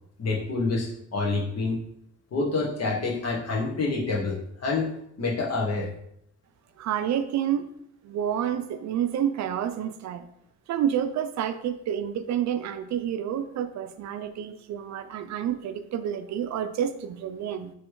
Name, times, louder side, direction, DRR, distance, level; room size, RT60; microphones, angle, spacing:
voice 1, 0.2-1.8 2.3-4.9 5.2-5.9, left 3 dB, 55° left, -2 dB, 1.4 m, -27 dB
voice 2, 6.8-7.7 8.0-10.3 10.7-17.7, right 9 dB, 65° right, 10 dB, 0.5 m, -29 dB
3.2 x 3.1 x 4.6 m, 0.72 s
cardioid pair, 90°, 30 cm